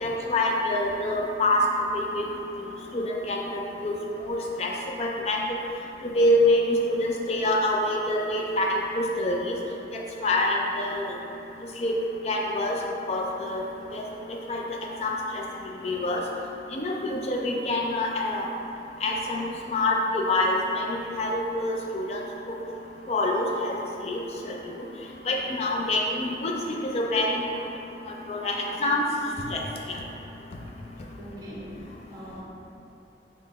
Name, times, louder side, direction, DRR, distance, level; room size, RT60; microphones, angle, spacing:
voice 1, 0.0-1.6 1.9-2.3 2.9-3.9 4.3-4.7 5.0-5.4 6.0-9.6 9.9-11.1 11.8-11.9 12.2-12.8 13.1-13.6 13.9-14.0 14.5-14.6 15.0-15.4 15.8-16.2 16.7-18.5 19.0-22.2 23.1-23.7 24.0-24.2 24.4-24.5 25.3-26.5 26.9-27.4 28.3-29.0 29.5-29.6, left 1 dB, 35° left, -1 dB, 0.3 m, -26 dB
voice 2, 31.2-32.4, equal, 20° right, -6 dB, 0.6 m, -42 dB
3.8 x 2.1 x 3.9 m, 2.8 s
head